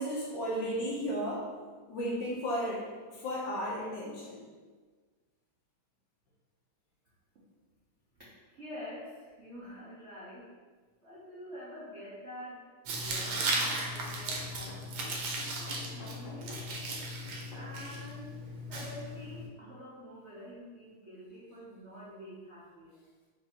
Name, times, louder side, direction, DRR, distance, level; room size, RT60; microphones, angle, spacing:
voice 1, 0.0-1.5 1.9-4.4, equal, 60° left, -4 dB, 1.3 m, -34 dB
voice 2, 8.5-10.5 11.0-15.2 15.6-16.6 17.6-18.3 18.7-23.0, equal, 90° right, -8 dB, 0.6 m, -47 dB
Tearing, 12.9-19.5, right 2 dB, 70° right, 1.3 m, -36 dB
sound 1, 13.1-18.0 18.7-18.8, left 2 dB, 45° left, 0.6 m, -49 dB
4.8 x 2.8 x 2.9 m, 1.4 s
omnidirectional pair, 2.4 m